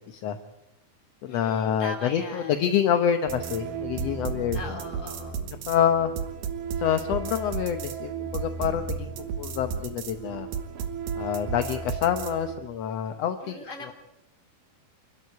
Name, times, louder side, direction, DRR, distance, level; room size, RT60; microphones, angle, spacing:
voice 1, 0.1-0.4 1.2-4.8 5.7-6.1 6.8-10.5 11.2-13.9, left 9 dB, 70° left, 8 dB, 1.6 m, -27 dB
voice 2, 1.3-2.6 4.5-5.4 13.4-13.9, left 2 dB, 25° left, 3 dB, 3.2 m, -39 dB
sound 1, 3.3-12.6, right 6 dB, 90° right, 3.1 m, -33 dB
26.5 x 12.5 x 9.4 m, 0.91 s
omnidirectional pair, 3.9 m